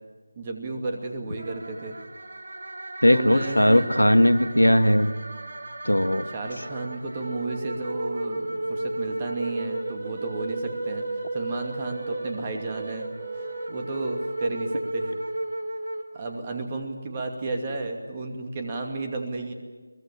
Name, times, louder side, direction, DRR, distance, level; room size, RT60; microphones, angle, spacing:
voice 1, 0.4-2.0 3.1-3.9 6.3-11.0 11.3-13.1 13.3-15.1 16.1-19.5, right 3 dB, 20° right, 3 dB, 2.5 m, -32 dB
sound 1, 1.4-16.7, right 1 dB, 50° right, 1.9 m, -34 dB
voice 2, 3.0-5.1 5.8-6.3, equal, 80° left, 10 dB, 1.7 m, -18 dB
23.0 x 19.5 x 8.8 m, 1.4 s
figure-of-eight pair, 160°, 0 cm